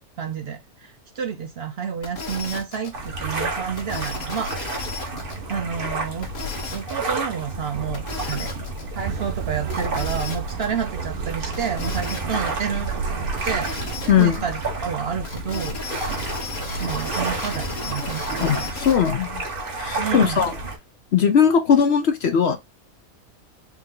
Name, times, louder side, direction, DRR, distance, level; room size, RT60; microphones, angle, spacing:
voice 1, 0.2-4.7 5.5-6.3 6.7-8.5 8.9-15.8 16.8-18.7 20.0-20.5, right 7 dB, 60° right, 0.7 m, -30 dB
sound 1, 2.0-2.9 3.8-5.3 6.2-7.1 7.9-8.8 9.7-10.6 11.5-12.5 13.4-14.4 15.2-19.1, left 3 dB, 85° left, 2.0 m, -34 dB
sound 2, 2.9-20.8, right 2 dB, 40° right, 1.3 m, -31 dB
sound 3, 9.0-14.4, right 7 dB, 85° right, 1.1 m, -32 dB
voice 2, 18.4-19.4 19.8-20.5 21.1-22.6, left 7 dB, 60° left, 0.8 m, -19 dB
4.3 x 2.7 x 3.7 m
omnidirectional pair, 1.5 m